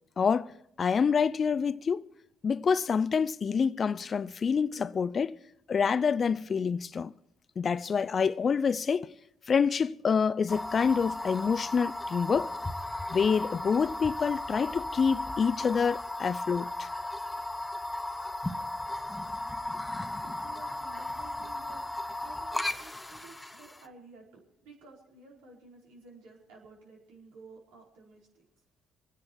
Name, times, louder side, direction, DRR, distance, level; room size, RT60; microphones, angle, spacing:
voice 1, 0.2-0.5 0.8-2.1 2.4-5.4 5.7-7.1 7.6-9.1 9.5-12.5 13.1-16.9, left 6 dB, 45° left, 0.5 m, -27 dB
sound 1, 10.5-23.8, left 1 dB, 15° left, 0.7 m, -36 dB
voice 2, 20.0-21.8 22.1-28.6, right 3 dB, 85° right, 4.8 m, -53 dB
25.5 x 9.8 x 4.7 m
supercardioid pair, 65°, 0 cm